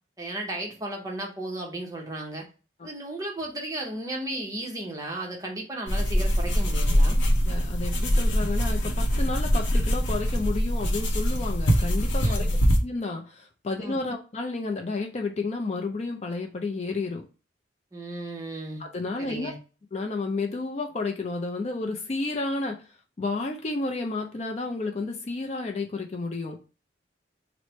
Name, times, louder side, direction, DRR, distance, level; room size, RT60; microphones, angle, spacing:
voice 1, 0.2-2.5 2.8-7.2 12.2-12.6 13.8-14.0 17.9-18.8 19.2-19.6, right 1 dB, 20° right, -1 dB, 0.7 m, -35 dB
sound 1, 5.9-12.8, equal, 80° left, 0.6 m, -23 dB
voice 2, 7.5-12.5 12.8-17.2 18.8-19.5 19.9-22.8 23.2-26.6, left 3 dB, 35° left, 2 dB, 0.4 m, -31 dB
3.1 x 2.0 x 4.1 m, 0.34 s
head